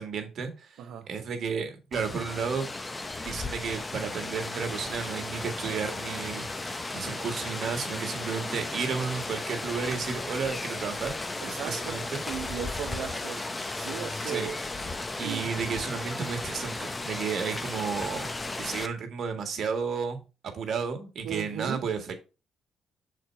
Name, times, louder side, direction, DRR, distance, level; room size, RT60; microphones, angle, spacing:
voice 1, 0.0-2.7 3.2-11.1 11.6-12.2 14.2-14.5 15.2-18.3 18.6-22.1, right 6 dB, 60° right, 1.7 m, -32 dB
Rain, 1.9-18.9, left 2 dB, 20° left, 0.9 m, -35 dB
voice 2, 11.4-12.0 12.3-14.7 15.2-15.4 21.2-21.8, right 9 dB, 85° right, 0.9 m, -37 dB
6.5 x 4.4 x 4.5 m
cardioid pair, 90°, 0 cm